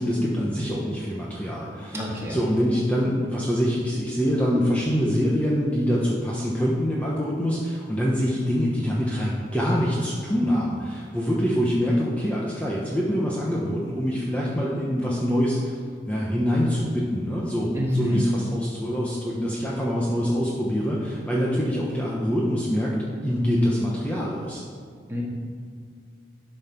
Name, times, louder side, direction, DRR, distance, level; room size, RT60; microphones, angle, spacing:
voice 1, 0.0-2.0 2.3-15.8 16.1-24.6, equal, 10° left, -5 dB, 1.1 m, -25 dB
voice 2, 1.9-2.4 17.7-18.2 25.1-25.2, equal, 15° right, -4 dB, 2.1 m, -26 dB
11.5 x 5.6 x 5.9 m, 2.2 s
head